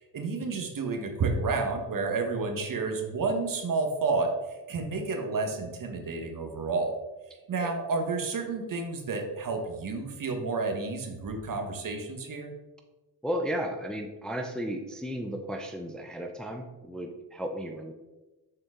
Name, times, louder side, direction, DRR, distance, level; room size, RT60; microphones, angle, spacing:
voice 1, 0.1-7.0 7.5-12.5, right 3 dB, 50° right, 4 dB, 1.2 m, -30 dB
voice 2, 13.2-17.9, equal, ahead, 3 dB, 0.5 m, -34 dB
6.5 x 4.4 x 3.7 m, 1.1 s
cardioid pair, 90°, 41 cm